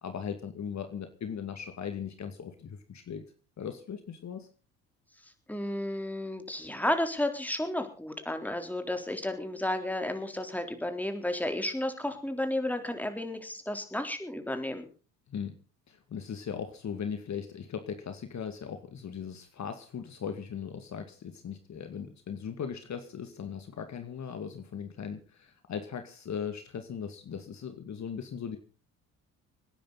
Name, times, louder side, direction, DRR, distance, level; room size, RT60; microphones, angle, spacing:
voice 1, 0.0-3.2 3.6-4.5 15.3-15.5 15.9-28.6, left 7 dB, 45° left, 7 dB, 2.4 m, -38 dB
voice 2, 5.5-14.9, left 1 dB, 5° left, 6 dB, 3.8 m, -32 dB
26.5 x 10.0 x 4.2 m, 0.35 s
hypercardioid pair, 60°, 39 cm